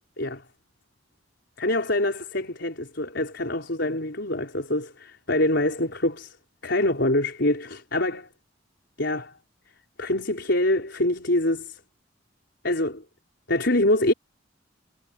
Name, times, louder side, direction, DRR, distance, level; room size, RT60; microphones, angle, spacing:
voice 1, 1.6-6.4 6.6-8.3 9.0-9.3 10.0-11.8 12.6-13.0 13.5-14.1, left 1 dB, 65° left, 4.9 m, -25 dB
head